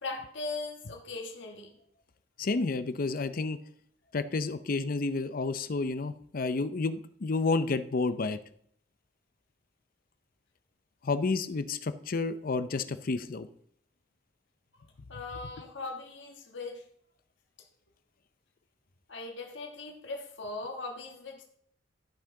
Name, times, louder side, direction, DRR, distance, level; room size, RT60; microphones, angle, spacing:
voice 1, 0.0-1.8 15.1-16.8 19.1-21.4, left 3 dB, 70° left, 2 dB, 1.5 m, -39 dB
voice 2, 2.4-3.6 4.1-8.4 11.0-13.5, left 3 dB, 50° left, 12 dB, 0.6 m, -30 dB
12.5 x 5.7 x 3.8 m, 0.66 s
head